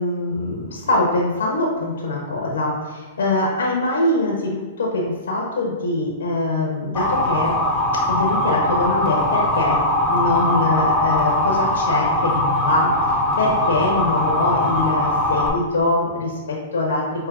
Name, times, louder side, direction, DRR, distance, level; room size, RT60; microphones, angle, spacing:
voice 1, 0.0-7.6 8.1-9.8 10.1-17.3, left 2 dB, 85° left, -1 dB, 0.8 m, -23 dB
Motor vehicle (road) / Siren, 6.9-15.5, left 1 dB, 15° left, 0.8 m, -20 dB
5.8 x 3.0 x 2.4 m, 1.3 s
hypercardioid pair, 120°, 0 cm